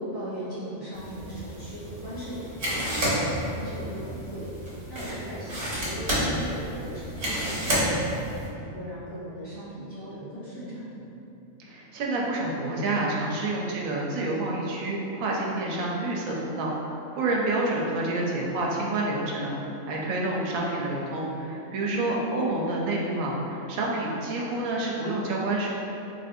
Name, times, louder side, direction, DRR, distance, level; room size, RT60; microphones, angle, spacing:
voice 1, 0.0-11.0 21.9-22.2, equal, 40° left, -13 dB, 1.8 m, -38 dB
sound 1, 0.9-8.5, equal, 55° right, 1.2 m, -30 dB
voice 2, 11.6-19.5 19.9-25.7, right 2 dB, 85° right, -3 dB, 1.0 m, -28 dB
3.9 x 2.6 x 2.5 m, 2.8 s
omnidirectional pair, 1.4 m